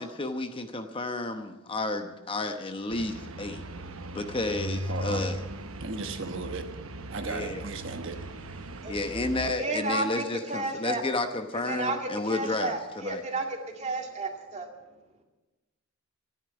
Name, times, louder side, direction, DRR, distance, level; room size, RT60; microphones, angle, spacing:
voice 1, 0.0-3.6 4.1-5.4 7.2-7.7 8.9-13.2, left 2 dB, 25° left, 7 dB, 0.9 m, -31 dB
sound 1, 2.9-9.5, right 1 dB, 80° right, 1.1 m, -38 dB
voice 2, 4.9-5.3 5.8-6.7 7.1-8.2, right 3 dB, 60° right, 6 dB, 1.2 m, -35 dB
voice 3, 9.4-11.0 11.7-14.7, right 2 dB, 35° right, 3 dB, 2.1 m, -32 dB
13.5 x 10.5 x 8.9 m, 1.1 s
head